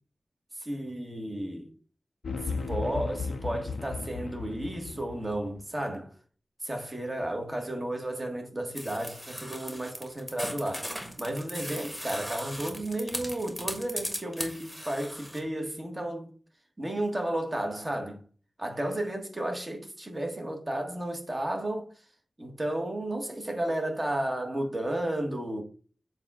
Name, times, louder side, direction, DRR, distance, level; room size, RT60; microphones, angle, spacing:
voice 1, 0.6-1.7 2.4-6.1 6.6-16.3 16.8-18.2 18.6-21.9 22.4-25.6, right 1 dB, 25° right, 1.5 m, -33 dB
sound 1, 2.2-5.6, left 4 dB, 70° left, 0.6 m, -35 dB
sound 2, 8.8-15.4, equal, ahead, 1.4 m, -38 dB
7.2 x 2.4 x 5.5 m
wide cardioid pair, 85°, 0 cm